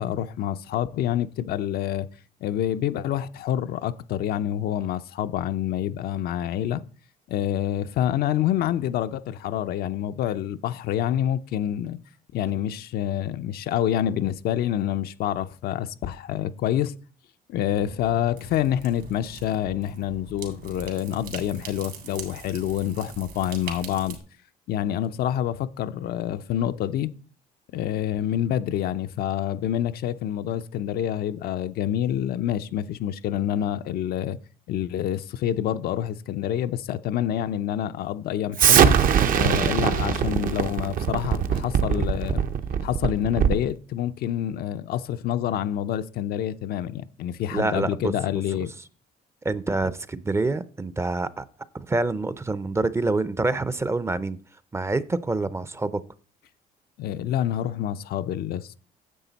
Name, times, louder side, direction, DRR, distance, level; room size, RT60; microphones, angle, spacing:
voice 1, 0.0-2.1 2.4-6.8 7.3-12.0 12.3-16.9 17.5-24.2 24.7-27.1 27.7-34.4 34.7-39.0 39.3-42.4 42.8-48.7 57.0-58.7, left 11 dB, 65° left, 0.6 m, -27 dB
sound 1, 17.7-24.2, right 6 dB, 75° right, 3.1 m, -42 dB
Explosion, 38.6-43.7, right 8 dB, 55° right, 0.8 m, -21 dB
voice 2, 47.5-48.1 49.4-51.4 51.7-54.4 54.7-56.0, right 3 dB, 15° right, 0.5 m, -26 dB
10.0 x 7.4 x 4.1 m
cardioid pair, 110°, 17 cm